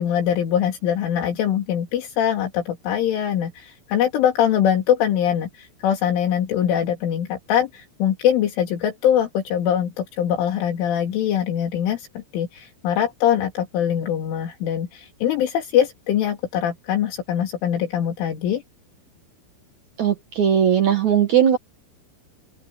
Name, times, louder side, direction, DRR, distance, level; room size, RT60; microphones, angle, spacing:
voice 1, 0.0-18.6, left 9 dB, 75° left, 5.3 m, -22 dB
voice 2, 20.0-21.6, right 9 dB, 85° right, 1.6 m, -18 dB
open air
omnidirectional pair, 5.7 m